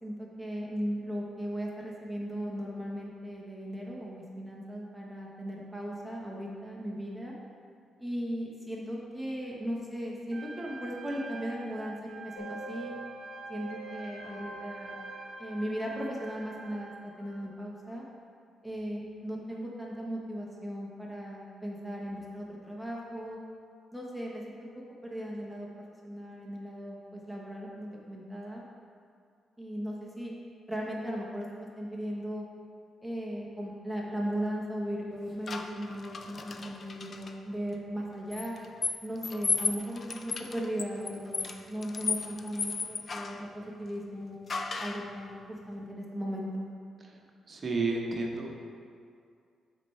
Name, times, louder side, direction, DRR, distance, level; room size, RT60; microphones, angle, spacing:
voice 1, 0.0-7.3 8.0-12.9 13.5-14.9 15.4-18.0 18.6-23.4 23.9-24.7 25.0-28.6 29.6-30.3 30.7-32.5 33.0-38.5 39.0-44.4 44.8-46.6, equal, ahead, -3 dB, 1.0 m, -37 dB
Trumpet, 10.3-17.0, right 4 dB, 50° right, 0.6 m, -46 dB
sound 1, 12.3-17.4, right 1 dB, 80° left, 1.2 m, -46 dB
sound 2, 35.5-37.3 38.3-43.5 44.5-45.1, left 4 dB, 40° left, 0.4 m, -35 dB
voice 2, 47.5-48.6, right 3 dB, 30° right, 0 dB, 1.1 m, -32 dB
12.5 x 4.5 x 3.2 m, 2.3 s
cardioid pair, 115°, 0 cm